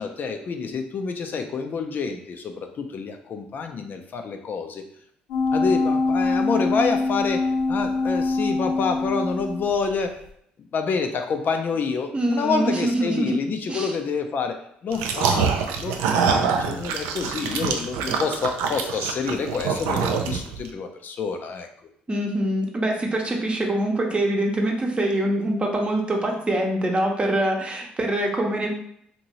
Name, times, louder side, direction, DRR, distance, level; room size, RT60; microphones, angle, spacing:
voice 1, 0.0-4.8 5.5-10.1 10.7-21.7, left 5 dB, 50° left, 5 dB, 0.4 m, -28 dB
sound 1, 5.3-9.9 10.3-10.4, left 3 dB, 80° left, 0.8 m, -24 dB
voice 2, 12.1-13.4 13.7-13.9 22.1-28.8, right 1 dB, 25° right, 1 dB, 0.8 m, -24 dB
sound 2, 14.9-20.7, right 6 dB, 80° right, 0.4 m, -25 dB
2.8 x 2.6 x 2.9 m, 0.69 s
hypercardioid pair, 60°, 4 cm